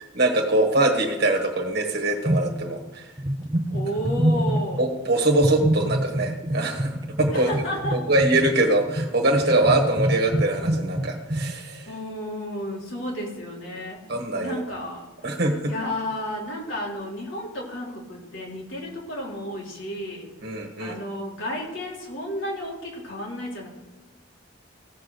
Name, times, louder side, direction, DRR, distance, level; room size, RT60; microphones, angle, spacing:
voice 1, 0.1-3.1 4.8-7.5 7.9-11.9 14.1-14.8 15.2-15.7 20.4-21.0, right 2 dB, 55° right, 3 dB, 1.4 m, -23 dB
sound 1, 2.2-2.9 3.2-4.9 5.4-11.5, right 1 dB, 20° right, 0.5 m, -26 dB
voice 2, 3.7-4.9 7.3-8.0 11.9-14.0 14.4-15.3 15.6-20.3 20.8-23.7, equal, 80° left, -3 dB, 3.6 m, -32 dB
16.0 x 5.9 x 6.6 m, 1.0 s
head